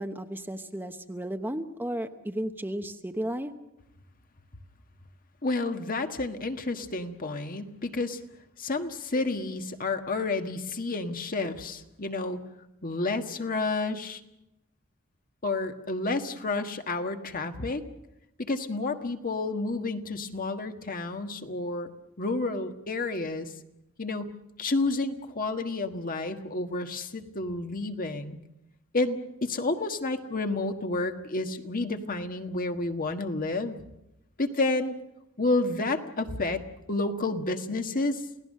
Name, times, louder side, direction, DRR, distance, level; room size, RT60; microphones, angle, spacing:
voice 1, 0.0-3.5, right 1 dB, 10° right, 7 dB, 1.0 m, -34 dB
voice 2, 5.4-8.2 8.6-12.4 12.8-14.2 15.4-17.8 18.4-21.9 22.2-23.5 24.0-28.4 28.9-33.8 34.4-34.9 35.4-36.6 36.9-38.2, left 2 dB, 45° left, 6 dB, 1.5 m, -30 dB
28.5 x 17.5 x 6.5 m, 0.89 s
head